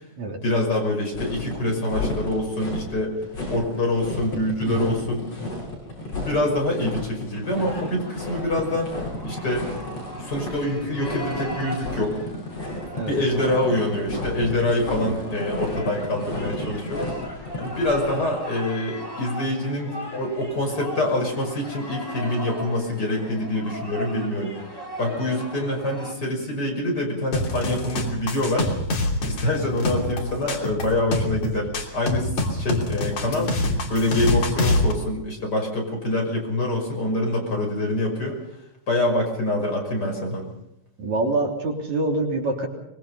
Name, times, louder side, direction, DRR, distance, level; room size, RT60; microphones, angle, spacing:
voice 1, 0.4-3.2 3.5-5.3 6.2-8.9 9.2-9.7 10.2-12.2 13.1-17.1 17.6-24.6 25.0-28.7 29.2-38.4 38.9-40.5, left 1 dB, 30° left, 0 dB, 6.3 m, -25 dB
sound 1, 1.1-18.2, left 2 dB, 55° left, 8.7 m, -33 dB
voice 2, 4.7-5.0 12.9-13.1 41.0-42.7, right 2 dB, 70° right, 1 dB, 4.6 m, -25 dB
sound 2, 7.5-26.1, equal, 5° left, 3.4 m, -38 dB
sound 3, 27.3-34.9, left 2 dB, 70° left, 4.4 m, -25 dB
25.0 x 22.0 x 5.6 m, 0.80 s
omnidirectional pair, 3.3 m